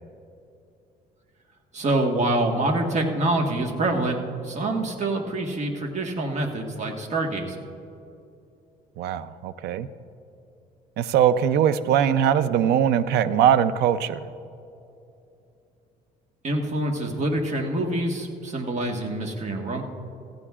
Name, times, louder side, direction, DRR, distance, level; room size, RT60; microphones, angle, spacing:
voice 1, 1.7-4.2 4.4-7.6 16.4-19.8, right 2 dB, 45° right, 3 dB, 1.6 m, -26 dB
voice 2, 9.0-9.9 11.0-14.2, right 9 dB, 80° right, 14 dB, 0.5 m, -21 dB
16.0 x 15.5 x 2.4 m, 2.7 s
cardioid pair, 110°, 17 cm